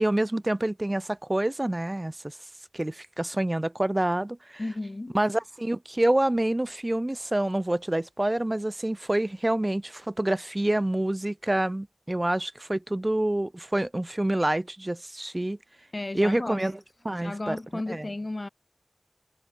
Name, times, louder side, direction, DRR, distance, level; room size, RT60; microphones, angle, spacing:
voice 1, 0.0-2.4 2.7-4.6 5.1-15.6 16.1-16.7 17.0-17.6 17.9-18.0, right 1 dB, 30° right, 0.4 m, -27 dB
voice 2, 4.6-5.2 15.9-16.7 17.2-18.5, left 2 dB, 50° left, 2.2 m, -34 dB
wide cardioid pair, 50°, 0 cm